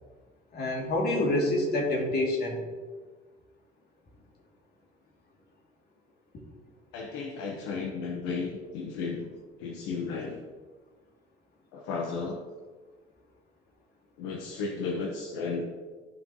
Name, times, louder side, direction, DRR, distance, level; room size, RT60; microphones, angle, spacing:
voice 1, 0.5-2.6, left 1 dB, 50° left, 0 dB, 2.4 m, -27 dB
voice 2, 6.9-9.3 9.6-10.4 11.7-12.4 14.2-15.6, left 4 dB, 85° left, 1 dB, 1.0 m, -34 dB
14.0 x 5.4 x 2.9 m, 1.4 s
cardioid pair, 105°, 20 cm